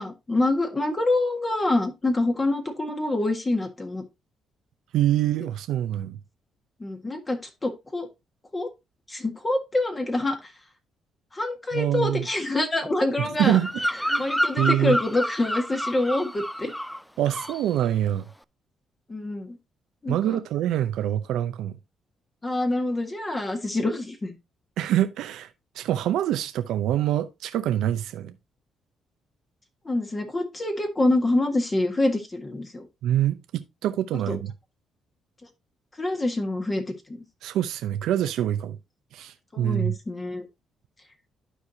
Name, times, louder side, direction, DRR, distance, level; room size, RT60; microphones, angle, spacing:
voice 1, 0.0-4.0 6.8-8.1 8.5-8.7 9.1-10.5 11.3-13.6 14.2-16.7 19.1-19.6 20.0-20.4 22.4-24.4 29.8-32.9 34.3-34.4 36.0-36.8 39.5-40.4, left 2 dB, 25° left, 1.6 m, -26 dB
voice 2, 4.9-6.2 11.7-12.3 13.2-13.7 14.0-14.3 14.6-15.0 17.2-18.3 20.1-21.8 24.8-25.5 25.8-28.3 33.0-34.5 37.4-38.8 39.1-40.0, right 12 dB, 85° right, 0.6 m, -25 dB
Bird vocalization bird call bird song, 13.5-17.0 17.3-17.7, equal, ahead, 0.3 m, -29 dB
12.0 x 4.7 x 2.7 m
cardioid pair, 90°, 0 cm